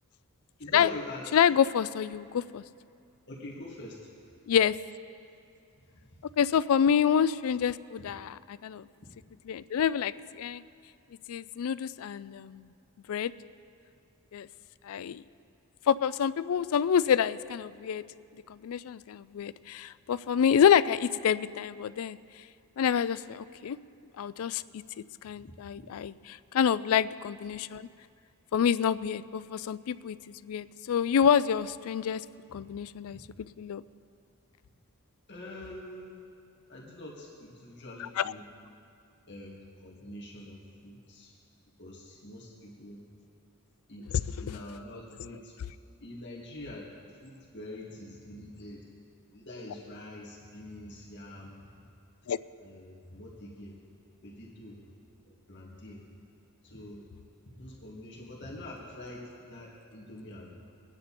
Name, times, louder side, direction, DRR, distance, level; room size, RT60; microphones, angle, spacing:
voice 1, 0.6-1.3 3.3-4.1 32.5-32.6 33.1-33.2 35.3-36.2 36.7-38.4 39.3-41.3 41.8-43.0 43.9-45.5 46.0-46.9 47.2-48.8 49.3-51.6 52.6-53.8 54.2-54.8 55.3-56.0 56.6-57.0 57.5-60.5, left 1 dB, 50° left, -4 dB, 2.1 m, -45 dB
voice 2, 1.3-2.6 4.5-4.7 6.4-8.9 9.5-10.6 11.3-12.7 13.1-13.3 14.3-14.5 14.8-15.2 15.9-18.0 18.6-22.2 22.8-23.8 24.2-24.6 25.2-27.9 28.5-32.2 32.5-33.2 33.6-33.8 38.0-38.3 44.1-44.6 52.3-52.4, left 8 dB, 65° left, 16 dB, 0.3 m, -27 dB
22.0 x 9.7 x 4.3 m, 2.4 s
head